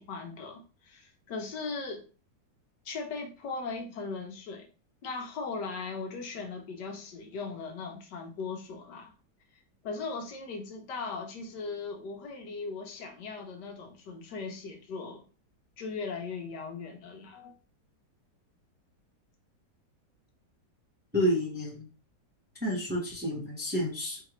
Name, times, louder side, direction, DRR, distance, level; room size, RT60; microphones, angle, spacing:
voice 1, 0.0-2.0 2.8-4.7 5.0-9.1 9.8-15.2 15.8-17.5, left 4 dB, 75° left, 1.4 m, -38 dB
voice 2, 21.1-21.9 22.6-24.2, equal, 5° right, 0.9 m, -30 dB
4.8 x 3.2 x 3.0 m
omnidirectional pair, 1.9 m